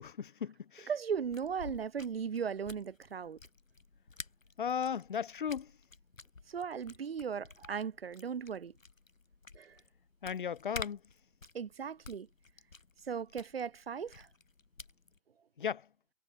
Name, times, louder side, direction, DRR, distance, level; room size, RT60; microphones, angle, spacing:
voice 1, 0.0-0.9 4.6-5.7 10.2-11.0 15.6-15.9, left 7 dB, 40° left, 1.7 m, -36 dB
voice 2, 0.9-3.4 6.5-8.7 9.5-9.8 11.5-12.3 13.0-14.3, right 7 dB, 50° right, 2.2 m, -37 dB
sound 1, 1.1-15.2, left 4 dB, 80° left, 7.5 m, -51 dB
hypercardioid pair, 160°, 39 cm